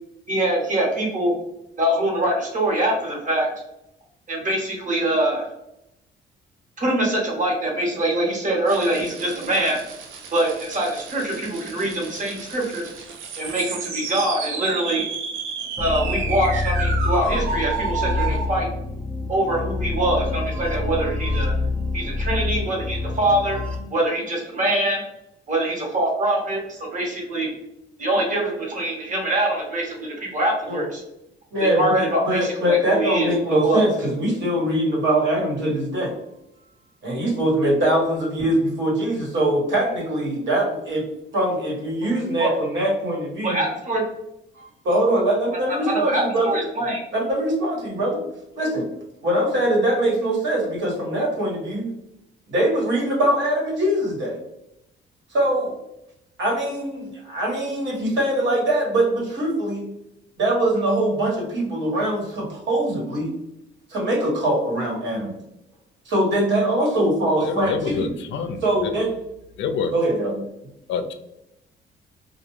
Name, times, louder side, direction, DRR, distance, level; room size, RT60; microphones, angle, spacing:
voice 1, 0.3-1.4 1.8-3.5 4.3-5.5 6.8-9.8 10.3-12.9 13.4-15.1 15.8-18.7 19.3-21.5 21.9-23.6 23.9-25.0 25.5-27.5 28.0-31.0 31.6-33.8 42.0-42.1 42.4-42.5 43.4-44.0 45.7-47.0, right 1 dB, 40° right, -1 dB, 1.0 m, -24 dB
sound 1, 8.7-18.5, right 5 dB, 85° right, 0.5 m, -32 dB
sound 2, 15.8-23.8, left 3 dB, 5° left, 0.5 m, -26 dB
voice 2, 31.5-36.1 37.0-41.0 41.3-43.6 44.5-46.6 47.1-48.2 48.5-48.8 49.2-51.9 52.5-54.4 55.3-55.7 56.4-59.9 60.4-63.3 63.9-65.3 66.0-68.1 68.6-69.1 69.9-70.4, right 1 dB, 65° right, -3 dB, 1.2 m, -22 dB
voice 3, 67.4-68.9 69.6-69.9 70.9-71.1, left 6 dB, 70° left, 7 dB, 0.4 m, -27 dB
2.3 x 2.2 x 3.0 m, 0.83 s
cardioid pair, 90°, 20 cm